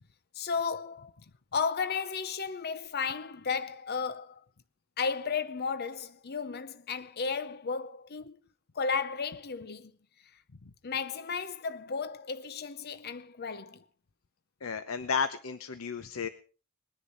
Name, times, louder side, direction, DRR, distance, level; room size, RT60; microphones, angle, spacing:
voice 1, 0.3-1.1 1.5-4.4 5.0-8.4 8.7-9.9 10.8-13.8, left 5 dB, 50° left, 0.7 m, -34 dB
voice 2, 14.6-16.3, left 5 dB, 80° left, 0.8 m, -32 dB
20.5 x 10.0 x 5.4 m
head